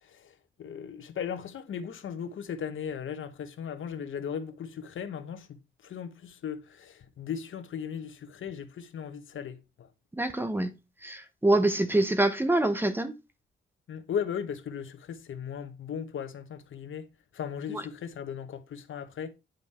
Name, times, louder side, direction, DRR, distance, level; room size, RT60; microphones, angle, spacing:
voice 1, 0.6-5.5 5.8-9.9 13.9-17.1 17.3-19.3, left 7 dB, 80° left, 1.1 m, -37 dB
voice 2, 10.2-10.7 11.0-13.1 17.7-17.8, right 1 dB, 10° right, 0.8 m, -25 dB
9.3 x 5.2 x 4.2 m
wide cardioid pair, 160°, 20 cm